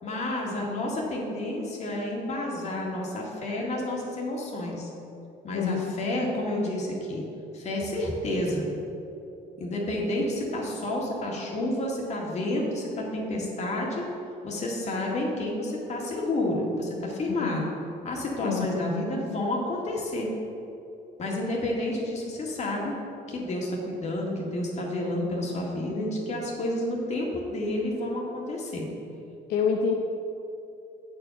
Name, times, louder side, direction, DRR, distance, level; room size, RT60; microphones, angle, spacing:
voice 1, 0.0-4.9 5.4-7.2 7.5-8.7 9.6-14.0 14.4-17.7 18.0-20.3 21.2-22.9 23.3-28.9, left 1 dB, 40° left, -2 dB, 1.9 m, -30 dB
voice 2, 5.5-6.0 17.4-17.7 18.4-19.1 29.5-29.9, left 6 dB, 75° left, 2 dB, 0.6 m, -28 dB
8.4 x 4.9 x 5.8 m, 2.8 s
cardioid pair, 110°, 17 cm